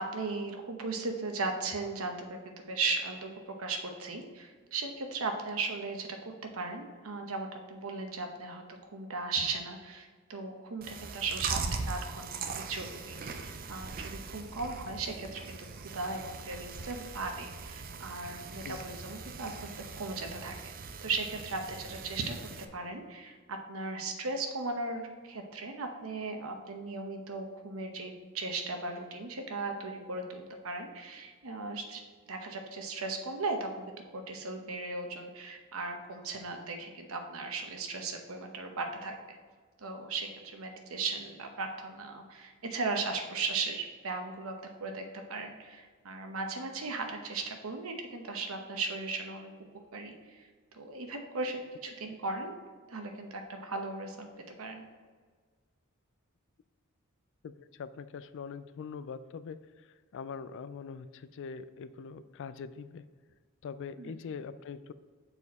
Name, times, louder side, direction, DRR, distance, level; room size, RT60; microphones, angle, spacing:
voice 1, 0.0-11.6 11.9-15.4 15.9-19.7 20.0-20.7 21.0-22.3 22.7-32.0 32.3-39.4 39.8-44.5 44.8-49.5 49.9-50.5 50.7-52.6 52.9-54.8 64.0-64.1, right 3 dB, 75° right, 4 dB, 0.9 m, -37 dB
Chewing mastication, 10.8-22.6, right 4 dB, 45° right, 0.5 m, -41 dB
voice 2, 57.4-59.6 60.1-63.0 63.6-64.9, left 6 dB, 60° left, 14 dB, 0.3 m, -42 dB
7.0 x 4.2 x 4.1 m, 1.5 s
head